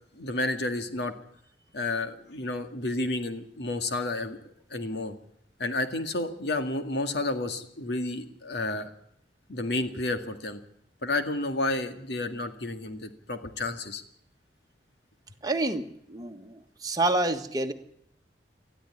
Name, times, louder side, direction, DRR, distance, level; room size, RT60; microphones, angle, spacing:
voice 1, 0.1-1.2 1.7-4.4 4.7-5.1 5.6-8.9 9.5-10.6 11.0-14.0, left 2 dB, 70° left, 7 dB, 2.1 m, -31 dB
voice 2, 15.4-17.7, right 2 dB, 20° right, 4 dB, 1.5 m, -28 dB
19.5 x 13.5 x 9.8 m, 0.71 s
head